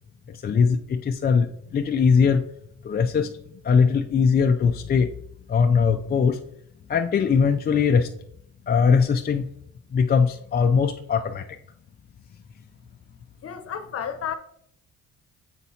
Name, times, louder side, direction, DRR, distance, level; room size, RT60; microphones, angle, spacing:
voice 1, 0.3-2.4 2.8-3.3 3.6-5.1 5.5-6.4 6.9-8.1 8.7-9.4 9.9-11.4, left 6 dB, 35° left, 0.4 m, -20 dB
voice 2, 13.4-14.4, left 8 dB, 50° left, 0.8 m, -31 dB
7.3 x 5.4 x 2.8 m
cardioid pair, 90°, 30 cm